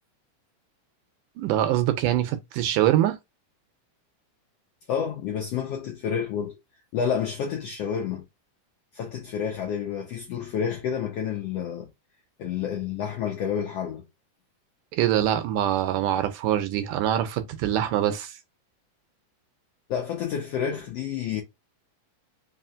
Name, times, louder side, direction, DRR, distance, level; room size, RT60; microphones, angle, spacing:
voice 1, 1.4-3.2 14.9-18.4, right 12 dB, 80° right, 2.0 m, -24 dB
voice 2, 4.9-6.6 6.9-8.3 8.9-11.9 12.4-14.0 19.9-21.4, left 8 dB, 75° left, 1.5 m, -29 dB
4.9 x 3.0 x 2.4 m
omnidirectional pair, 3.8 m